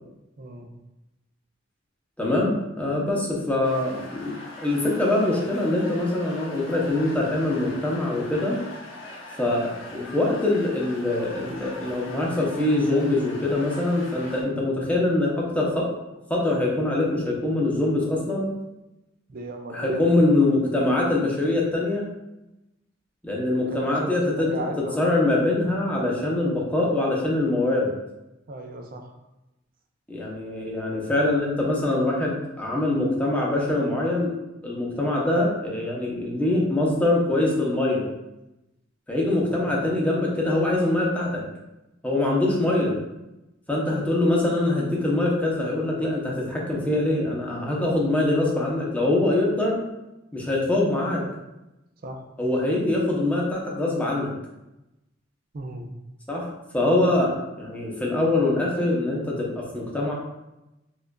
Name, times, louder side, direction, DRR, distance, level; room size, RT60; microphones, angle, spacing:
voice 1, 0.4-0.7 19.3-20.1 23.7-25.2 28.5-29.1 39.4-39.8 52.0-52.2 55.5-55.9, right 1 dB, 50° right, 4 dB, 0.5 m, -35 dB
voice 2, 2.2-8.6 9.4-15.9 16.3-18.5 19.7-22.1 23.2-24.7 25.0-27.9 30.1-34.3 34.6-38.1 39.1-41.4 42.0-42.9 43.7-49.8 50.3-51.3 52.4-54.3 56.3-56.5 56.7-60.1, left 2 dB, 10° left, -3 dB, 0.7 m, -23 dB
sound 1, 3.6-14.4, left 2 dB, 80° left, 0.7 m, -41 dB
4.7 x 2.4 x 2.2 m, 0.96 s
head